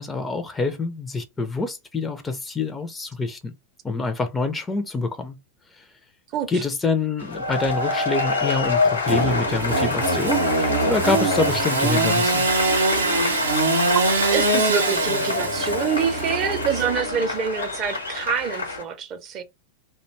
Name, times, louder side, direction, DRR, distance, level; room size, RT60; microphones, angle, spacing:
voice 1, 0.0-3.4 3.8-5.4 5.8-5.9 6.5-12.4, left 3 dB, 15° left, 0.4 m, -26 dB
voice 2, 6.3-6.6 13.9-19.4, right 7 dB, 35° right, 0.5 m, -26 dB
sound 1, 7.2-18.8, left 4 dB, 80° left, 0.9 m, -27 dB
Engine / Sawing, 9.1-17.3, right 2 dB, 75° right, 0.7 m, -23 dB
2.5 x 2.2 x 3.0 m
figure-of-eight pair, 90°, 0 cm